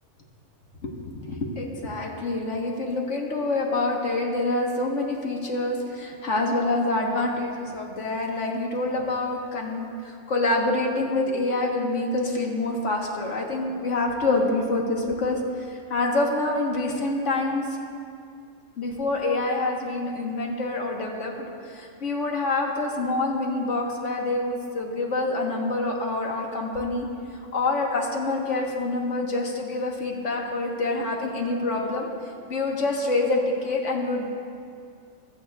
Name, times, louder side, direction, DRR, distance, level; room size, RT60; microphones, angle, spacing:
voice 1, 0.8-17.6 18.8-27.1 27.5-32.1 32.5-34.3, left 2 dB, 65° left, 0 dB, 1.6 m, -26 dB
15.5 x 12.0 x 2.3 m, 2.3 s
omnidirectional pair, 1.3 m